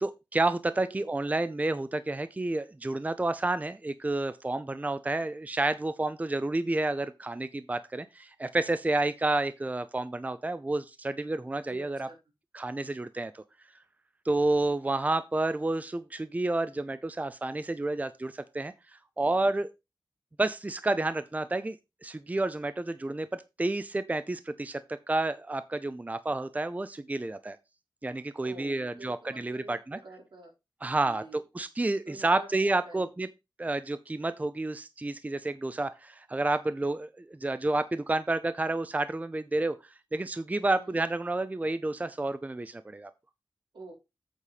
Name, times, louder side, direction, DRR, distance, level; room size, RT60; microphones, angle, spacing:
voice 1, 0.0-12.1 12.5-13.4 14.2-18.7 19.2-19.7 20.4-21.8 22.0-27.6 28.0-30.0 30.8-33.3 33.6-39.8 40.1-43.1, right 2 dB, 20° right, 0.5 m, -30 dB
voice 2, 0.7-1.1 11.7-12.2 28.4-30.5 31.0-31.4 32.1-32.5 32.8-33.0 40.6-41.0 43.7-43.9, right 2 dB, 80° right, 4.7 m, -47 dB
8.4 x 5.4 x 5.0 m
wide cardioid pair, 115°, 8 cm